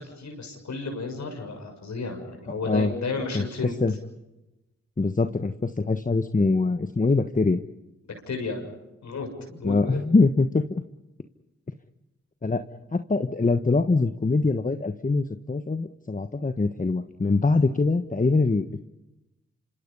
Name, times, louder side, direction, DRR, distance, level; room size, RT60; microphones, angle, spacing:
voice 1, 0.0-3.8 8.3-8.7 9.0-10.1, left 3 dB, 75° left, 4 dB, 6.8 m, -33 dB
voice 2, 3.3-3.9 5.0-7.6 9.6-10.6 12.4-12.6 12.9-18.8, left 3 dB, 30° left, 8 dB, 1.3 m, -23 dB
26.5 x 26.5 x 5.6 m, 0.97 s
supercardioid pair, 45°, 29 cm